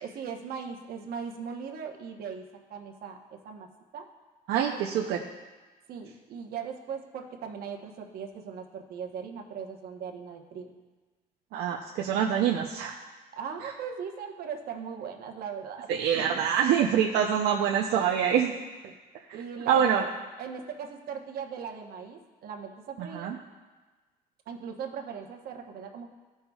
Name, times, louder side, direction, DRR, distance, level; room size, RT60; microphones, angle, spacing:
voice 1, 0.0-2.4 2.7-3.2 3.4-3.7 3.9-4.1 4.7-4.8 5.9-10.7 13.3-16.4 18.8-18.9 19.3-20.1 20.4-23.3 24.5-26.1, right 6 dB, 65° right, 3 dB, 1.0 m, -39 dB
voice 2, 4.5-5.2 11.5-13.0 15.9-18.6 19.3-19.4 19.7-20.0 23.0-23.4, right 8 dB, 80° right, 0 dB, 0.6 m, -25 dB
14.5 x 5.5 x 2.3 m, 1.3 s
cardioid pair, 110°, 17 cm